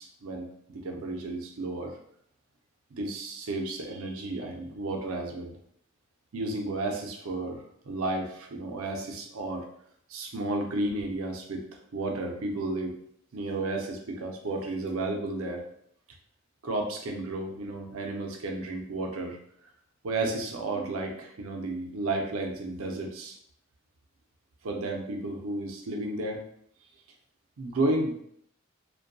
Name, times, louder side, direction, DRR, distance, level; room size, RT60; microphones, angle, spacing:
voice 1, 0.0-2.0 2.9-5.5 6.3-9.7 10.1-11.6 11.9-12.9 13.3-15.7 16.6-19.4 20.0-23.4 24.6-26.4 27.6-28.2, right 2 dB, 85° right, 2 dB, 0.5 m, -32 dB
2.5 x 2.2 x 2.6 m, 0.68 s
head